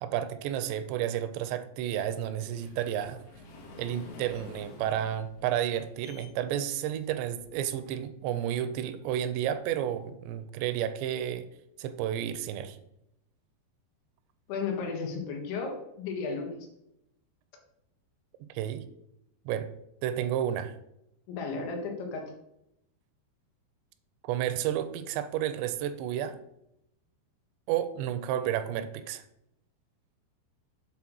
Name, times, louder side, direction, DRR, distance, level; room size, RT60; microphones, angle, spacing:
voice 1, 0.0-3.2 3.8-11.5 11.8-12.8 18.5-18.8 19.5-19.7 20.0-20.7 24.2-26.4 27.7-29.2, right 10 dB, 85° right, 11 dB, 2.7 m, -31 dB
sound 1, 1.9-8.0 8.6-8.7 9.3-9.4 9.7-9.8, left 3 dB, 70° left, 3.8 m, -50 dB
voice 2, 14.5-16.7 21.3-22.3, left 4 dB, 90° left, 2 dB, 3.9 m, -34 dB
8.4 x 4.0 x 6.1 m, 0.81 s
omnidirectional pair, 5.2 m